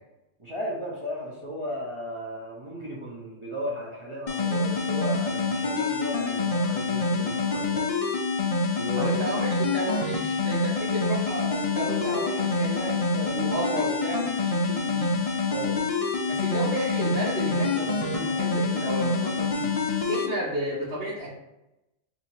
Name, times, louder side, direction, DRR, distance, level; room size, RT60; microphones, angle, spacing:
voice 1, 0.4-7.9 8.7-9.1 15.5-15.8, equal, 35° right, -5 dB, 0.6 m, -35 dB
sound 1, 4.3-20.3, left 3 dB, 55° left, 0.4 m, -26 dB
voice 2, 8.9-15.2 16.3-19.7 20.1-21.3, right 1 dB, 55° right, -6 dB, 1.0 m, -32 dB
2.8 x 2.8 x 4.3 m, 0.93 s
omnidirectional pair, 1.3 m